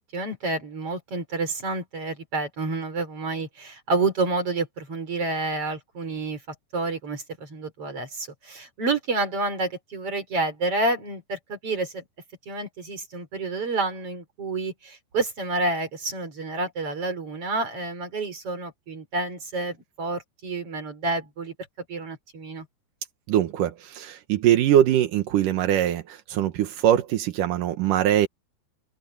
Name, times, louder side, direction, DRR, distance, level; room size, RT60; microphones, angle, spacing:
voice 1, 0.1-6.4 6.7-12.0 12.5-21.5 21.9-22.7, right 3 dB, 30° right, 5.8 m, -29 dB
voice 2, 23.3-28.3, right 11 dB, 70° right, 2.1 m, -22 dB
open air
omnidirectional pair, 5.2 m